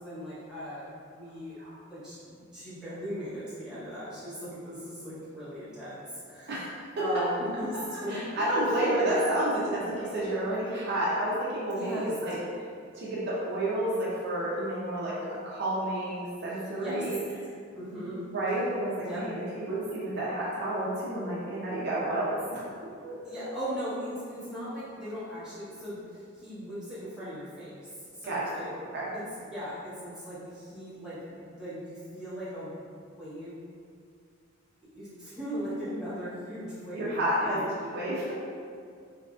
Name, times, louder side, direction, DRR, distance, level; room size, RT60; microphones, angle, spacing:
voice 1, 0.0-1.6 1.9-6.6 7.0-8.4 11.7-12.1 16.8-17.0 17.7-18.2 19.0-19.2 23.2-28.7 29.1-32.8 33.2-33.6 34.9-37.7, equal, 5° right, -13 dB, 1.0 m, -38 dB
voice 2, 6.5-7.2 8.1-12.4 12.9-17.2 18.3-22.6 23.0-23.2 28.2-29.1 36.9-38.3, right 1 dB, 55° right, -7 dB, 0.6 m, -30 dB
3.2 x 2.5 x 2.4 m, 2.2 s
head